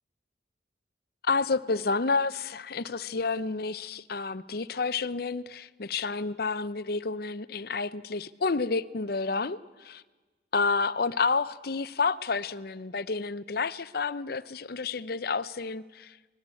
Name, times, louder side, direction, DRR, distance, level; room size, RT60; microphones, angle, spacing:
voice 1, 1.2-10.0 10.5-16.2, left 4 dB, 55° left, 15 dB, 0.7 m, -30 dB
24.0 x 20.5 x 8.4 m, 1.3 s
head